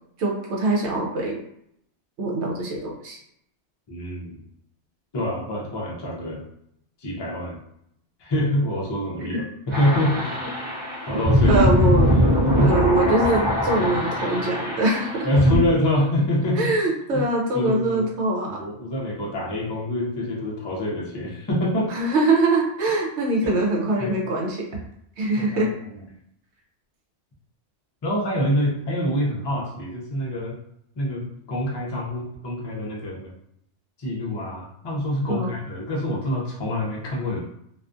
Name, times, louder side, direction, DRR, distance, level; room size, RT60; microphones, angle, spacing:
voice 1, 0.2-1.4 2.2-3.2 9.3-9.4 11.5-12.1 12.6-15.3 16.6-18.6 21.9-24.7 25.2-25.7 35.3-35.5, right 2 dB, 75° right, -1 dB, 0.8 m, -23 dB
voice 2, 3.9-4.4 5.1-6.5 7.0-7.6 8.2-10.4 11.1-11.9 12.2-12.7 13.8-13.9 15.2-16.7 17.1-17.3 17.5-18.1 18.5-21.9 23.4-23.6 24.0-24.1 25.4-26.0 28.0-30.5 31.0-33.3 34.0-37.4, left 1 dB, 35° left, -3 dB, 0.4 m, -26 dB
sound 1, 9.7-15.6, equal, 30° right, 0.7 m, -22 dB
2.4 x 2.3 x 2.5 m, 0.74 s
omnidirectional pair, 1.2 m